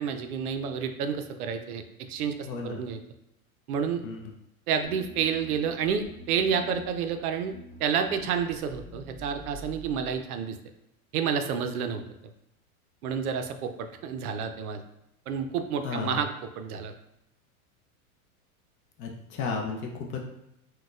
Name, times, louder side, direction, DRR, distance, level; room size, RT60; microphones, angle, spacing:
voice 1, 0.0-3.0 3.7-4.0 4.7-7.5 7.8-10.6 11.1-12.0 13.0-14.8 15.3-16.3 16.6-16.9, right 7 dB, 80° right, 7 dB, 0.5 m, -29 dB
voice 2, 2.4-2.8 4.0-4.3 15.8-16.2 19.0-20.2, left 5 dB, 30° left, 1 dB, 0.4 m, -33 dB
sound 1, 4.8-10.2, equal, 5° left, 1.4 m, -47 dB
3.9 x 2.2 x 2.4 m, 0.84 s
hypercardioid pair, 110°, 44 cm